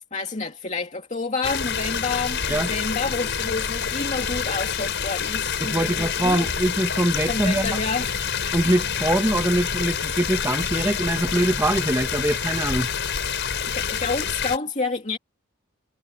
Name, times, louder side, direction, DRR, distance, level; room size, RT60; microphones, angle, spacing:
voice 1, 0.1-6.4 7.3-8.1 13.6-15.2, left 3 dB, 35° left, 2.5 m, -29 dB
sound 1, 1.4-14.6, left 6 dB, 55° left, 6.1 m, -27 dB
voice 2, 5.6-7.7 8.5-12.9, right 1 dB, 15° right, 1.6 m, -23 dB
head